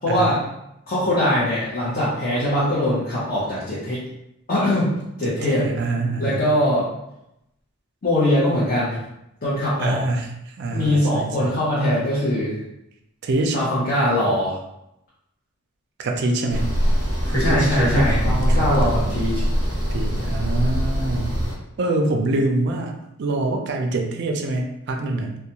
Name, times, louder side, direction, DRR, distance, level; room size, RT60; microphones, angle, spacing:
voice 1, 0.0-0.4 0.9-4.0 4.5-4.9 5.2-5.6 6.2-6.9 8.0-9.0 9.4-10.0 10.7-12.6 13.5-14.6 17.4-19.3, left 1 dB, 40° left, -10 dB, 0.7 m, -21 dB
voice 2, 5.2-6.5 9.8-11.6 13.2-13.6 16.0-16.7 18.1-19.2 19.9-21.4 21.8-22.9 23.2-25.4, right 2 dB, 50° right, 3 dB, 0.3 m, -25 dB
sound 1, 16.5-21.5, equal, 70° left, 1.3 m, -22 dB
2.3 x 2.2 x 2.8 m, 0.84 s
head